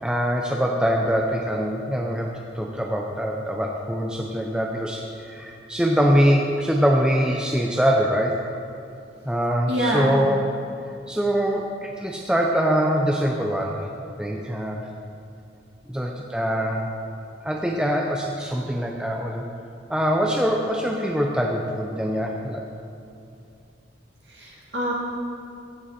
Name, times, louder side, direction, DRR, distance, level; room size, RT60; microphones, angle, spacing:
voice 1, 0.0-8.4 9.3-10.4 11.1-13.9 14.2-14.9 15.9-16.9 17.4-19.4 19.9-22.6, equal, 5° right, 0 dB, 0.5 m, -23 dB
voice 2, 9.7-10.2 24.3-24.9, right 1 dB, 55° right, -5 dB, 2.8 m, -25 dB
15.0 x 7.9 x 4.2 m, 2.6 s
head